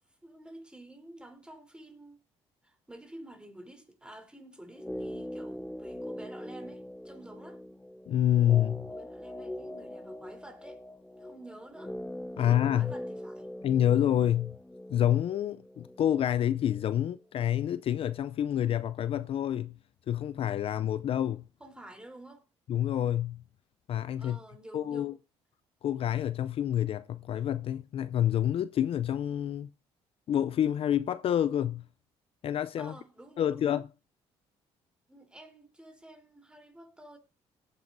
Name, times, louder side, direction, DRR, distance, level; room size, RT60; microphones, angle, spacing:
voice 1, 0.2-2.2 2.6-7.6 8.9-10.8 11.2-12.0 12.3-13.5 21.6-22.5 24.2-25.2 32.8-33.7 35.1-37.2, right 1 dB, 10° right, 3.4 m, -50 dB
sound 1, 4.7-16.9 17.1-17.2, left 1 dB, 10° left, 0.9 m, -42 dB
voice 2, 8.1-8.9 12.4-12.9 13.6-14.6 14.9-19.8 20.1-21.4 22.7-23.4 23.9-24.4 24.7-25.1 25.8-29.7 30.3-31.8 32.4-33.0 33.4-33.9, left 10 dB, 55° left, 0.4 m, -28 dB
18.0 x 9.2 x 2.6 m
cardioid pair, 80°, 12 cm